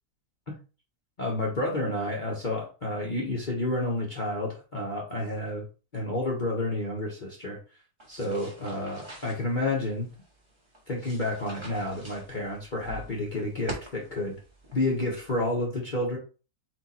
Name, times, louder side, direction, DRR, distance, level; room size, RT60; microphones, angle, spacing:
voice 1, 1.2-5.6 5.9-7.6 8.1-10.1 10.9-14.4 14.7-16.2, left 2 dB, 35° left, -2 dB, 0.9 m, -30 dB
sound 1, 8.0-15.4, right 1 dB, 20° right, 1.3 m, -46 dB
4.5 x 2.7 x 4.1 m, 0.34 s
omnidirectional pair, 1.7 m